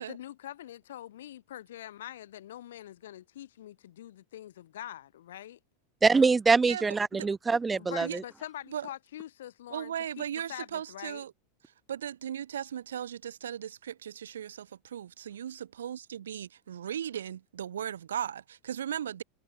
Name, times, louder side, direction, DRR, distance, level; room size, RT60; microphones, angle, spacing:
voice 1, 0.0-5.6 7.8-11.2, left 12 dB, 75° left, 4.2 m, -44 dB
voice 2, 6.0-8.1, right 4 dB, 15° right, 0.4 m, -24 dB
voice 3, 9.7-11.3 11.9-19.2, right 9 dB, 80° right, 1.1 m, -37 dB
hypercardioid pair, 95°, 0 cm